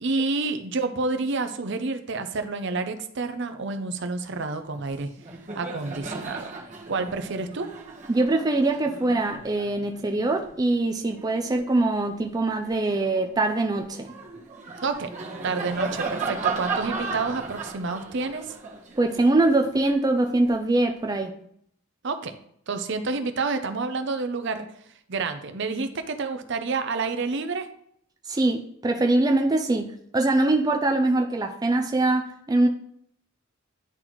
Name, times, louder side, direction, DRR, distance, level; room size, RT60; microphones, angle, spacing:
voice 1, 0.0-5.1 5.5-6.5 6.9-7.7 14.8-15.1 15.4-18.5 22.0-22.4 22.7-24.7 25.1-27.7, right 3 dB, 55° right, 9 dB, 0.6 m, -29 dB
Laughter, 4.7-4.9 5.2-11.9 12.4-20.6, right 4 dB, 35° right, 1.2 m, -36 dB
voice 2, 8.1-14.1 18.9-21.4 28.3-32.7, right 2 dB, 20° right, 4 dB, 0.4 m, -23 dB
10.5 x 4.0 x 3.0 m, 0.69 s
head